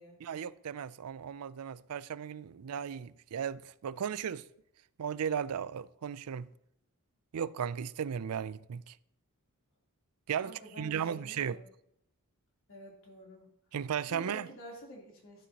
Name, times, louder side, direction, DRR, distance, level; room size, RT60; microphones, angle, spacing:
voice 1, 0.2-4.4 5.0-6.5 7.3-9.0 10.3-11.6 13.7-14.5, right 8 dB, 75° right, 0.4 m, -36 dB
voice 2, 10.4-11.7 12.7-13.5 14.0-15.5, equal, 65° left, 3.4 m, -49 dB
12.5 x 12.0 x 2.9 m
head